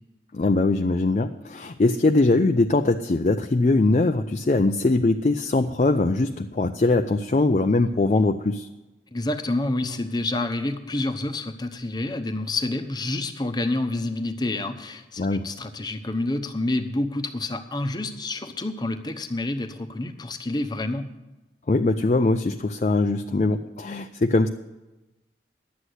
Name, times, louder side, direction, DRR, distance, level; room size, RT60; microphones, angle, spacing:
voice 1, 0.3-8.7 15.2-15.4 21.7-24.5, left 2 dB, 40° left, 6 dB, 0.4 m, -21 dB
voice 2, 9.1-21.1, left 2 dB, 25° left, 7 dB, 0.9 m, -28 dB
11.0 x 8.2 x 7.9 m, 1.1 s
head